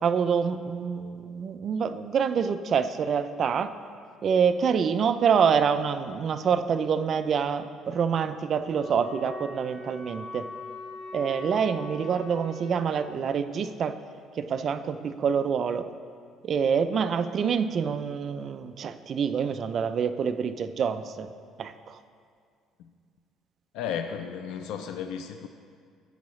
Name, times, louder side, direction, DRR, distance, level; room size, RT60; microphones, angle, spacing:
voice 1, 0.0-3.7 4.2-10.5 11.1-13.9 14.4-15.9 16.4-21.3 21.6-22.0, right 7 dB, 40° right, 10 dB, 0.4 m, -26 dB
Wind instrument woodwind instrument, 8.6-13.0, left 2 dB, 25° left, 1.9 m, -41 dB
voice 2, 23.7-25.5, left 8 dB, 80° left, 6 dB, 0.4 m, -34 dB
13.0 x 8.4 x 3.1 m, 2.2 s
cardioid pair, 155°, 0 cm